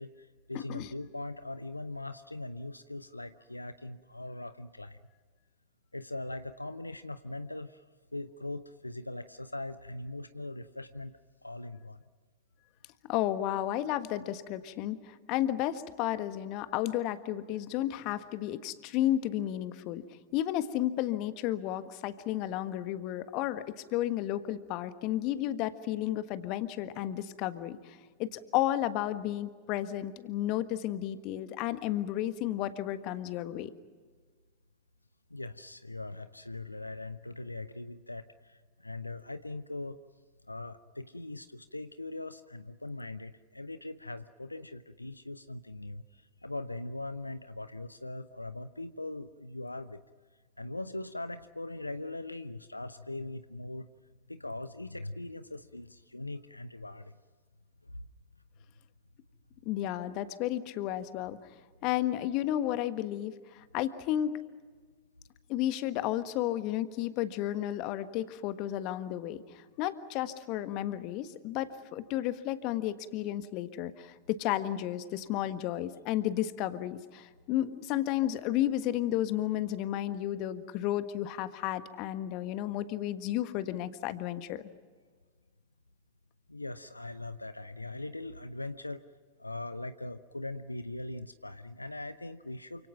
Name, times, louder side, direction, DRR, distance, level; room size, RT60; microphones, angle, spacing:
voice 1, 0.0-5.0 5.9-7.8 8.1-11.1 11.4-12.0 35.3-40.0 40.5-50.0 50.6-53.9 54.3-57.1 57.8-58.0 86.5-89.0 89.4-92.9, left 2 dB, 85° left, 12 dB, 0.8 m, -41 dB
voice 2, 0.5-0.9 13.1-20.0 20.3-23.6 23.9-33.7 59.6-61.5 61.8-64.3 65.5-84.7, left 13 dB, 40° left, 11 dB, 1.5 m, -32 dB
28.5 x 26.5 x 5.9 m, 1.5 s
figure-of-eight pair, 90°, 0 cm